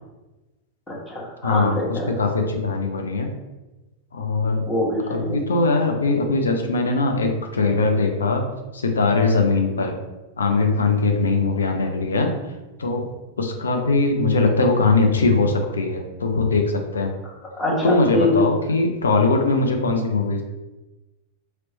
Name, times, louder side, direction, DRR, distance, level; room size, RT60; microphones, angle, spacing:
voice 1, 0.9-2.1 4.7-5.4 17.5-18.3, left 1 dB, 15° left, -4 dB, 1.1 m, -24 dB
voice 2, 1.4-3.3 4.1-4.6 5.1-8.4 8.7-9.9 10.4-12.3 12.8-13.1 13.4-17.1 17.8-20.4, left 3 dB, 70° left, 4 dB, 0.5 m, -21 dB
3.0 x 3.0 x 2.9 m, 1.1 s
figure-of-eight pair, 90°, 0 cm